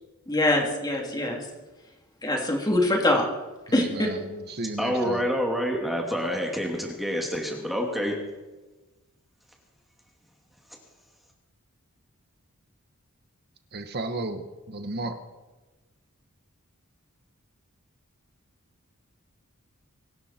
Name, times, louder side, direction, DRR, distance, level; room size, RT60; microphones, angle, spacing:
voice 1, 0.3-1.4 2.2-3.3 3.7-4.1, left 1 dB, 20° left, 0 dB, 3.2 m, -23 dB
voice 2, 3.7-5.2 13.7-15.2, right 2 dB, 50° right, 8 dB, 1.3 m, -34 dB
voice 3, 4.8-8.2, equal, ahead, 0 dB, 2.4 m, -27 dB
24.5 x 12.5 x 4.5 m, 1.2 s
head